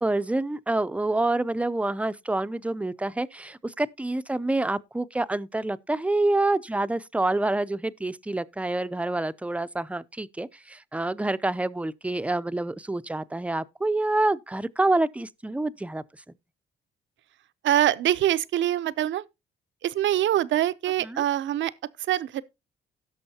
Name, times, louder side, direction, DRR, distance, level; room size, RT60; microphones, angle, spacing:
voice 1, 0.0-16.0 21.0-21.2, right 2 dB, 5° right, 0.5 m, -27 dB
voice 2, 17.6-19.2 19.8-21.7 22.0-22.4, right 12 dB, 70° right, 0.7 m, -24 dB
17.0 x 6.3 x 2.8 m
cardioid pair, 90°, 20 cm